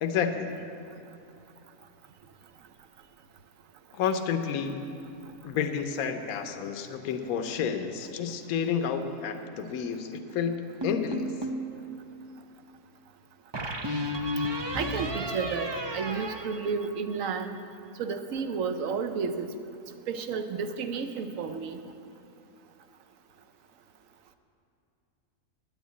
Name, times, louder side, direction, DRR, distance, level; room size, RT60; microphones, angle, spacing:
voice 1, 0.0-0.6 3.9-4.9 5.4-11.3, left 7 dB, 70° left, 7 dB, 1.1 m, -30 dB
sound 1, 10.8-11.7 13.5-17.3, equal, 40° right, 0.3 m, -33 dB
voice 2, 14.7-17.6 18.0-19.5 20.1-21.8, right 5 dB, 65° right, 8 dB, 1.0 m, -32 dB
9.7 x 9.4 x 8.2 m, 2.7 s
omnidirectional pair, 1.6 m